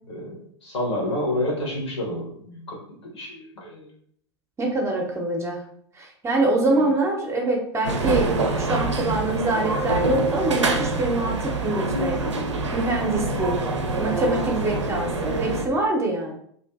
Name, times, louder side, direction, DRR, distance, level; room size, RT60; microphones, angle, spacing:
voice 1, 0.1-3.9 6.7-6.9, left 1 dB, 70° left, -2 dB, 1.0 m, -29 dB
voice 2, 4.6-5.6 5.9-12.2 12.7-13.6 14.0-16.3, right 2 dB, 20° right, 1 dB, 0.5 m, -25 dB
sound 1, 7.8-15.7, right 3 dB, 85° right, 0.4 m, -25 dB
2.6 x 2.5 x 2.3 m, 0.65 s
figure-of-eight pair, 90°, 15 cm